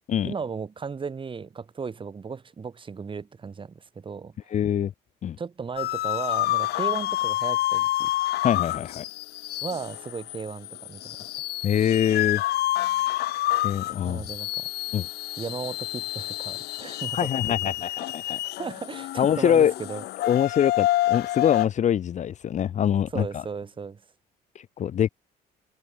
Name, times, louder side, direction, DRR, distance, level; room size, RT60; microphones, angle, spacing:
voice 1, 0.2-4.3 5.4-8.1 9.6-11.3 14.0-14.7 15.4-17.6 17.8-17.9 18.2-20.0 23.1-24.0, right 5 dB, 30° right, 5.0 m, -35 dB
voice 2, 4.5-4.9 5.2-5.4 8.4-9.0 11.6-12.4 13.1-13.2 13.6-14.2 14.9-15.1 17.1-18.4 19.2-19.7 20.2-23.4 24.5-25.1, left 9 dB, 45° left, 0.8 m, -24 dB
sound 1, 5.8-21.7, left 16 dB, 75° left, 1.1 m, -28 dB
cardioid pair, 110°, 17 cm